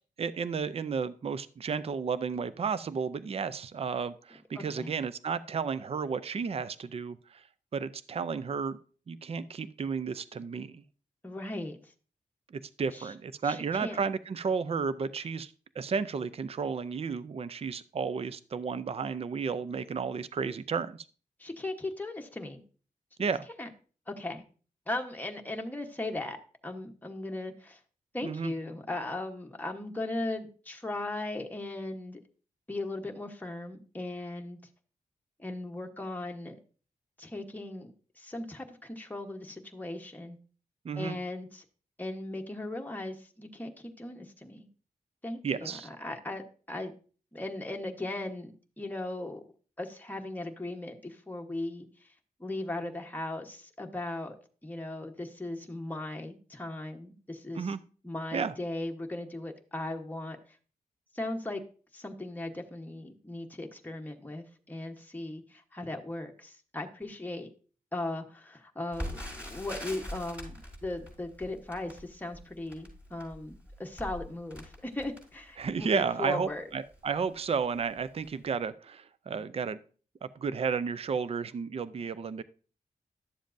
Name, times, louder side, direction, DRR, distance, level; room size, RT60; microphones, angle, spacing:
voice 1, 0.2-7.4 7.7-8.8 9.1-10.8 12.5-21.1 23.2-23.5 28.2-28.5 40.8-41.2 45.4-45.9 57.6-57.8 58.3-58.5 75.6-79.8 80.2-82.4, right 5 dB, 45° right, 15 dB, 0.4 m, -32 dB
voice 2, 4.6-4.9 11.2-11.8 12.9-13.1 13.4-14.0 21.4-22.6 23.6-23.7 24.1-24.4 24.9-26.4 26.6-27.8 28.1-32.2 32.7-34.6 35.4-36.6 37.2-40.4 40.9-41.6 42.0-44.7 45.2-46.9 47.3-49.4 49.8-51.9 52.4-54.4 54.6-57.7 58.0-60.4 61.1-61.6 61.9-67.5 67.9-76.6, left 2 dB, 10° left, 3 dB, 1.1 m, -38 dB
Crackle, 68.9-75.9 76.5-76.6 76.9-77.1 77.7-78.0 78.2-78.3, equal, 10° right, 5.1 m, -43 dB
11.5 x 7.3 x 2.6 m, 0.39 s
wide cardioid pair, 85°, 14 cm